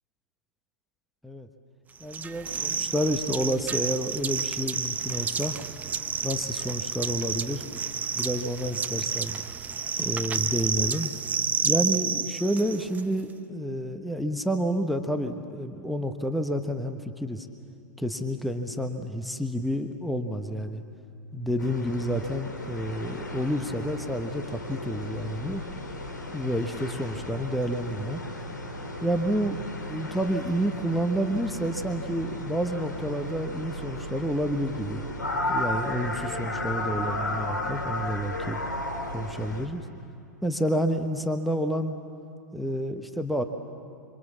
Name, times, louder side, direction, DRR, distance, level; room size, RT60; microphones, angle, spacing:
voice 1, 2.0-5.5 6.2-7.6 8.1-9.4 10.0-11.1 11.6-17.5 18.0-20.8 21.3-25.6 26.3-28.2 29.0-29.6 29.8-35.0 35.5-38.6 39.1-39.8 40.4-41.9 42.5-43.4, equal, ahead, 7 dB, 1.1 m, -29 dB
sound 1, 2.1-13.0, right 6 dB, 15° right, 0.8 m, -30 dB
sound 2, 21.6-39.7, left 1 dB, 80° left, 2.9 m, -34 dB
27.0 x 25.0 x 7.4 m, 2.5 s
figure-of-eight pair, 100°, 10 cm